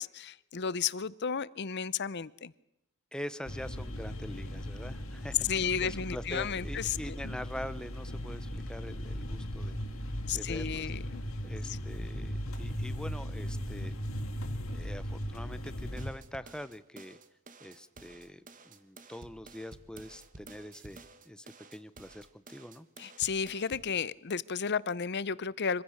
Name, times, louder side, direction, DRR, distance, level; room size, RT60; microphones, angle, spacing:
voice 1, 0.0-2.5 5.4-7.2 10.3-11.2 11.7-11.8 23.0-25.8, left 6 dB, 50° left, 19 dB, 0.7 m, -33 dB
voice 2, 3.1-9.8 10.3-10.9 11.4-13.9 14.7-17.2 17.6-22.9, left 1 dB, 5° left, 13 dB, 0.9 m, -44 dB
sound 1, 3.4-16.1, equal, 70° left, 2.9 m, -38 dB
sound 2, 16.0-24.0, right 3 dB, 40° right, 1.5 m, -52 dB
25.0 x 16.0 x 6.5 m, 0.86 s
head